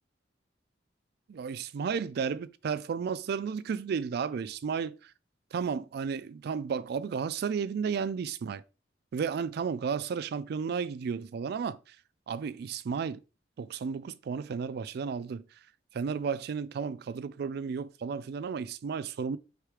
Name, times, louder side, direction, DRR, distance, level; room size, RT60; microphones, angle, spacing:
voice 1, 1.3-5.0 5.5-8.6 9.1-11.8 12.3-13.2 13.6-15.4 15.9-19.4, right 6 dB, 60° right, 0.3 m, -33 dB
4.8 x 3.3 x 3.2 m
head